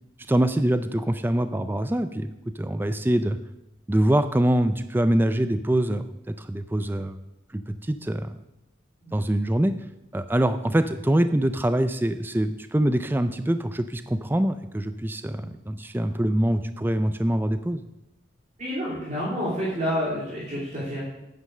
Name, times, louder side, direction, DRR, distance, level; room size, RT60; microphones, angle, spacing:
voice 1, 0.3-2.3 2.6-3.4 3.9-7.2 7.5-8.4 9.1-9.7 10.1-17.8, right 1 dB, 10° right, 11 dB, 0.4 m, -24 dB
voice 2, 18.6-21.0, equal, 35° right, -6 dB, 3.0 m, -28 dB
9.4 x 9.3 x 6.6 m, 0.92 s
head